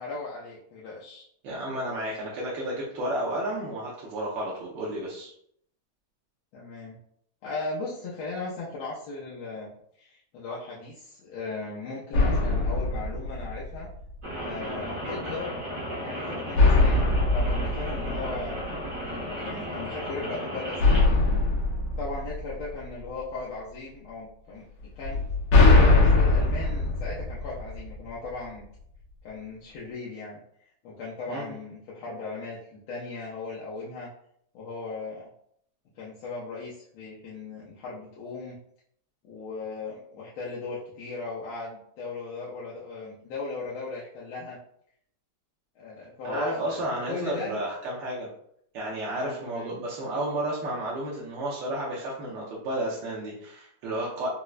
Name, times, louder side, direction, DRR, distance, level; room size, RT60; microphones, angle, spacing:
voice 1, 0.0-1.3 6.5-7.0 7.4-9.7 10.0-13.9 14.4-15.5 16.0-17.1 17.3-18.6 19.0-21.1 22.0-24.7 25.0-25.2 25.5-28.7 29.2-30.4 30.8-34.1 34.5-35.3 36.0-38.6 39.2-44.6 45.8-47.6 49.1-49.7, left 3 dB, 90° left, -6 dB, 1.5 m, -37 dB
voice 2, 1.4-5.3 31.3-31.4 46.2-48.3 48.7-54.3, right 1 dB, 70° right, -6 dB, 1.3 m, -32 dB
sound 1, 12.1-14.0 16.6-19.0 20.8-23.1 25.0-28.1, left 3 dB, 75° left, 1.5 m, -22 dB
Rain, 14.2-21.0, equal, 40° right, 0.7 m, -34 dB
4.5 x 2.0 x 2.3 m, 0.69 s
omnidirectional pair, 2.2 m